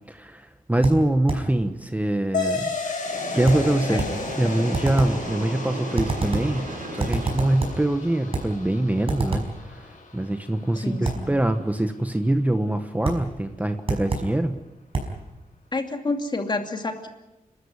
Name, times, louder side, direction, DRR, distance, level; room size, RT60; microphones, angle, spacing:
voice 1, 0.1-3.1 3.3-4.0 4.4-14.6, right 1 dB, 10° right, 8 dB, 1.1 m, -24 dB
sound 1, 0.8-1.6 3.5-4.3 4.7-5.3 6.0-6.6 7.0-7.9 8.3-8.6 9.1-9.6 11.0-11.3 13.0-13.3 13.9-14.4 14.9-15.2, right 3 dB, 45° right, 5.2 m, -28 dB
sound 2, 2.3-11.4, left 4 dB, 65° left, 5.8 m, -34 dB
Train, 3.0-8.0, right 2 dB, 70° right, 5.9 m, -36 dB
voice 2, 10.8-11.3 15.7-17.1, left 2 dB, 35° left, 5 dB, 2.6 m, -28 dB
30.0 x 13.0 x 9.6 m, 0.98 s
wide cardioid pair, 120°, 14 cm